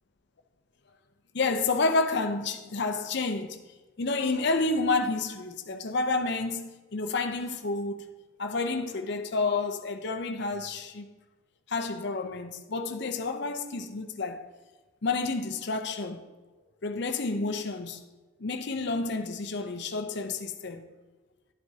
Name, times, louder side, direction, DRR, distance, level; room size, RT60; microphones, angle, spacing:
voice 1, 1.3-3.6 4.0-8.0 8.4-11.1 11.7-14.5 15.0-16.2 16.8-18.0 18.4-20.9, left 3 dB, 55° left, 0.6 m, -29 dB
11.0 x 7.7 x 2.8 m
head